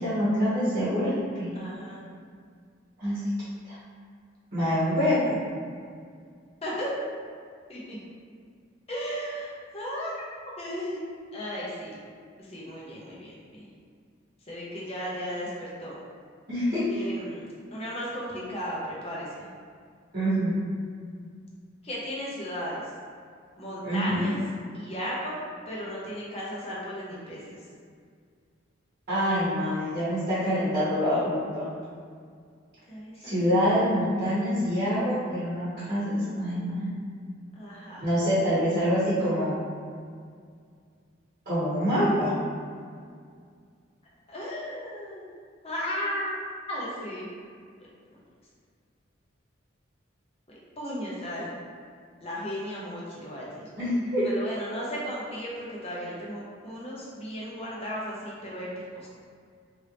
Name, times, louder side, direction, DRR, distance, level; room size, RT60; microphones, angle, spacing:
voice 1, 0.0-1.5 3.0-3.2 3.6-3.7 4.5-5.4 16.5-16.8 20.1-20.5 23.8-24.3 29.1-31.7 33.2-36.9 38.0-39.6 41.4-42.4 53.8-54.3, equal, 45° right, -12 dB, 1.2 m, -25 dB
voice 2, 1.5-2.0 6.6-6.9 7.7-8.0 8.9-10.1 10.6-11.0 11.3-12.0 12.4-13.7 14.5-16.0 16.9-17.4 17.7-19.5 21.8-22.8 23.6-24.4 24.7-25.4 25.7-27.6 32.9-33.7 37.6-38.1 44.3-45.3 45.6-46.3 46.7-47.3 50.8-51.5 52.2-53.7 54.3-59.1, equal, 30° left, -6 dB, 0.8 m, -35 dB
3.3 x 2.7 x 3.0 m, 2.1 s
head